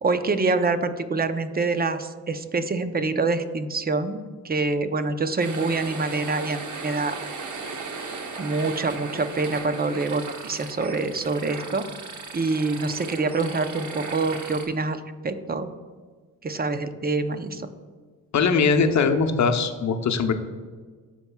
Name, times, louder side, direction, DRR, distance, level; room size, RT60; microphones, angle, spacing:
voice 1, 0.0-7.2 8.4-11.8 12.3-15.7 16.4-17.7, right 3 dB, 25° right, 10 dB, 0.7 m, -26 dB
sound 1, 5.4-14.6, right 4 dB, 50° right, 1.0 m, -36 dB
voice 2, 18.3-20.3, left 5 dB, 45° left, 6 dB, 0.8 m, -21 dB
13.0 x 4.6 x 2.3 m, 1.5 s
supercardioid pair, 55°, 38 cm